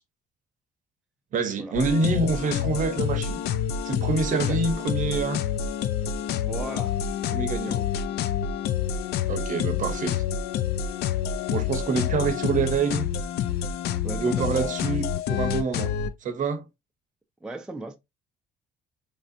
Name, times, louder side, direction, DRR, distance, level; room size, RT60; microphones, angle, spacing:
voice 1, 1.3-3.4 3.8-5.4 7.3-7.8 9.3-10.2 11.5-13.1 14.2-15.9 16.2-16.6, right 4 dB, 50° right, 0.7 m, -26 dB
sound 1, 1.7-16.1, left 8 dB, 75° left, 0.4 m, -28 dB
voice 2, 6.4-7.0 7.5-7.9 14.0-14.7 17.4-18.0, right 2 dB, 5° right, 0.4 m, -36 dB
3.3 x 2.5 x 2.5 m
cardioid pair, 110°, 17 cm